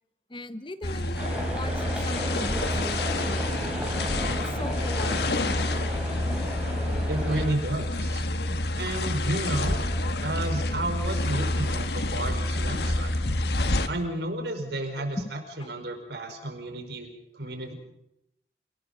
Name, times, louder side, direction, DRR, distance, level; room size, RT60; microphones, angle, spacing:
voice 1, 0.3-3.5 4.3-5.5 8.5-8.6 11.5-11.6 13.6-13.7 15.0-15.3 15.6-15.7 16.3-16.4, left 1 dB, 30° left, 11 dB, 1.0 m, -39 dB
sound 1, 0.8-13.9, left 1 dB, 70° left, 1.5 m, -28 dB
sound 2, 1.2-7.5, equal, 5° right, 6.0 m, -34 dB
voice 2, 7.1-8.2 8.8-9.8 10.2-13.2 13.8-17.7, right 1 dB, 75° right, 5 dB, 5.0 m, -32 dB
28.5 x 19.0 x 5.3 m, 0.79 s
head